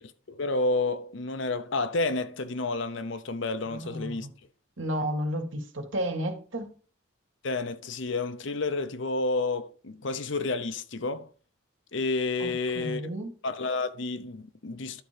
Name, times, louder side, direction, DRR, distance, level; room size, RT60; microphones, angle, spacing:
voice 1, 0.3-4.3 7.4-11.3 11.9-13.0 13.4-15.0, left 3 dB, 60° left, 0.7 m, -30 dB
voice 2, 3.7-4.3 4.8-6.7 12.4-13.3, equal, 65° right, 2.0 m, -32 dB
11.5 x 4.5 x 5.1 m
head